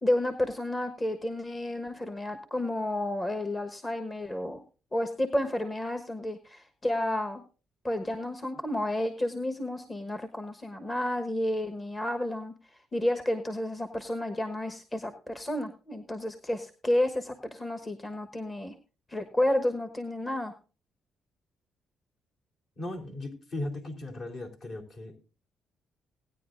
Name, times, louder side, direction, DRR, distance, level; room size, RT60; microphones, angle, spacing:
voice 1, 0.0-4.6 4.9-7.4 7.8-12.5 12.9-18.7 19.1-20.5, left 1 dB, 20° left, 7 dB, 1.3 m, -31 dB
voice 2, 22.8-25.2, left 1 dB, 55° left, 0 dB, 3.8 m, -37 dB
19.0 x 9.8 x 2.6 m, 0.34 s
cardioid pair, 90°, 0 cm